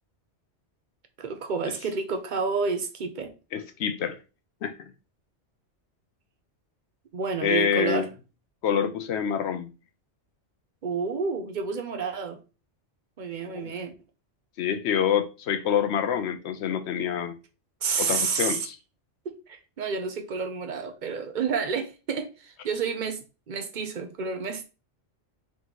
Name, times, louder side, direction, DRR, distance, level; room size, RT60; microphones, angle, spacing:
voice 1, 1.2-3.3 7.1-8.1 10.8-12.4 13.2-13.9 17.8-18.7 19.2-23.2 23.5-24.6, right 5 dB, 50° right, 0.7 m, -30 dB
voice 2, 3.5-4.2 4.6-4.8 7.4-8.1 8.6-9.7 13.4-13.7 14.6-17.4 18.0-18.7, left 8 dB, 70° left, 0.8 m, -26 dB
3.8 x 3.0 x 3.9 m
omnidirectional pair, 1.2 m